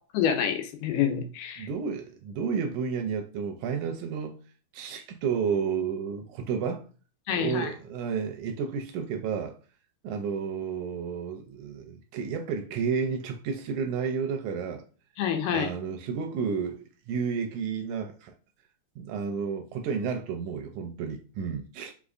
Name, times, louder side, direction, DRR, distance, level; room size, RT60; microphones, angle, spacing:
voice 1, 0.1-1.7 7.3-7.7 15.2-15.7, left 8 dB, 85° left, 2.3 m, -27 dB
voice 2, 1.6-4.4 4.7-6.9 7.3-9.6 10.0-14.8 15.5-16.8 17.1-18.3 19.0-21.9, right 6 dB, 80° right, 1.8 m, -31 dB
5.1 x 3.5 x 2.4 m
omnidirectional pair, 3.7 m